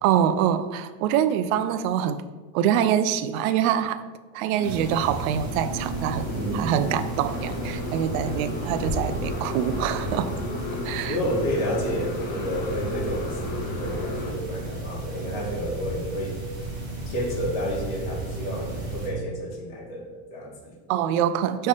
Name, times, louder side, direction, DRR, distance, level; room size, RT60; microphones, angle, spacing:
voice 1, 0.0-2.2 2.5-4.0 4.3-10.3 10.8-11.2 20.9-21.7, right 9 dB, 85° right, 12 dB, 0.6 m, -25 dB
Motorcycle, 4.6-14.3, left 3 dB, 25° left, 0.4 m, -34 dB
sound 1, 4.6-19.1, right 2 dB, 10° right, 1.4 m, -34 dB
voice 2, 6.3-6.9 11.1-16.4 17.1-20.7, equal, 80° left, -1 dB, 1.8 m, -30 dB
5.4 x 3.3 x 5.5 m, 1.4 s
cardioid pair, 180°, 41 cm